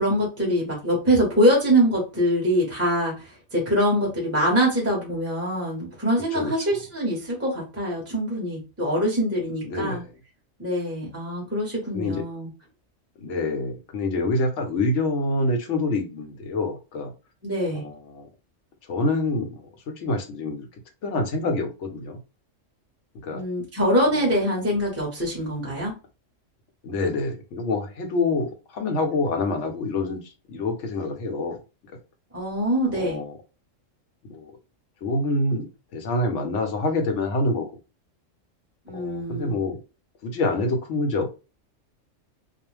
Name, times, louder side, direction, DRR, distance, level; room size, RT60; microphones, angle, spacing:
voice 1, 0.0-10.0 10.6-12.5 17.4-17.8 23.3-25.9 32.3-33.2 38.9-39.6, equal, 15° right, 0.8 m, -24 dB
voice 2, 9.6-10.1 11.9-12.2 13.2-17.1 17.7-18.3 18.9-20.7 21.0-22.2 23.1-23.4 26.8-31.6 32.9-33.4 34.3-34.5 35.0-35.7 35.9-37.7 38.9-39.8 40.2-41.3, left 2 dB, 70° left, 1.0 m, -26 dB
2.4 x 2.0 x 3.2 m
omnidirectional pair, 1.3 m